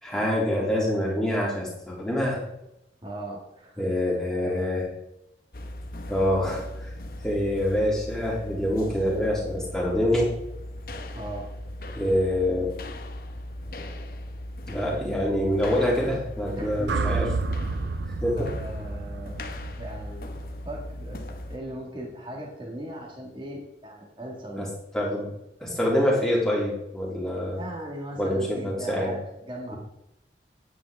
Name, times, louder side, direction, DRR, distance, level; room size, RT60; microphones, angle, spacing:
voice 1, 0.0-2.4 3.8-4.9 6.1-6.9 7.2-10.3 11.9-12.7 14.7-17.3 18.2-18.5 24.5-24.7 24.9-25.3 25.6-27.6 28.2-29.1 29.7-29.8, left 1 dB, 5° left, -4 dB, 2.7 m, -25 dB
voice 2, 3.0-3.9 4.1-4.6 11.1-11.5 16.6-17.2 18.4-19.4 19.8-20.3 20.6-24.7 27.6-29.8, right 1 dB, 30° right, -1 dB, 1.9 m, -38 dB
sound 1, 5.5-21.6, left 1 dB, 55° left, 0.8 m, -38 dB
sound 2, 16.9-21.1, right 4 dB, 85° right, 0.5 m, -31 dB
9.5 x 9.2 x 3.5 m, 0.83 s
head